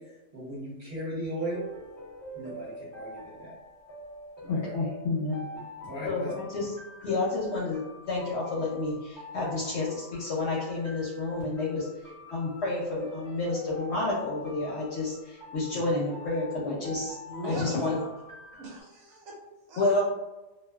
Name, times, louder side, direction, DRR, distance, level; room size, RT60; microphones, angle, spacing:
voice 1, 0.0-1.7 2.3-3.5 4.4-4.8 5.8-6.3 7.0-7.1, equal, 45° right, -9 dB, 0.9 m, -37 dB
sound 1, 1.5-18.8, left 1 dB, 15° left, 0.7 m, -46 dB
voice 2, 4.5-5.4 6.0-6.7 7.0-11.9 12.3-17.2 17.4-18.0 19.8-20.0, left 2 dB, 65° left, -5 dB, 0.8 m, -30 dB
voice 3, 17.3-18.1 18.6-19.3 19.7-20.0, right 1 dB, 80° right, -2 dB, 1.2 m, -40 dB
2.4 x 2.2 x 2.2 m, 1.1 s
omnidirectional pair, 1.4 m